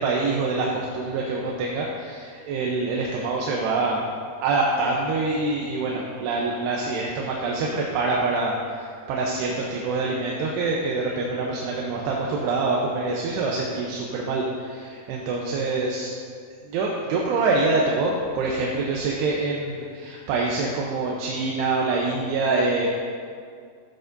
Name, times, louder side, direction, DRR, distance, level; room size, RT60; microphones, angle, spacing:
voice 1, 0.0-4.0 4.4-16.1 16.6-22.9, right 3 dB, 80° right, -2 dB, 2.9 m, -25 dB
14.5 x 8.2 x 2.6 m, 2.2 s
omnidirectional pair, 4.8 m